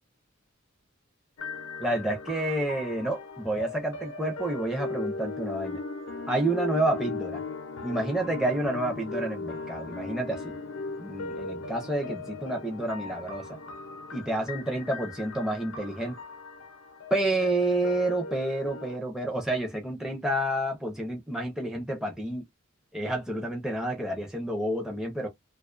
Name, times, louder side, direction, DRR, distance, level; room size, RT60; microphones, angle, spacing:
sound 1, 1.4-19.0, left 3 dB, 75° left, 0.6 m, -38 dB
voice 1, 1.8-5.8 6.3-7.4 7.8-10.5 11.0-13.6 14.1-16.1 17.1-22.4 22.9-25.3, right 1 dB, 5° right, 0.5 m, -29 dB
2.4 x 2.3 x 2.3 m
head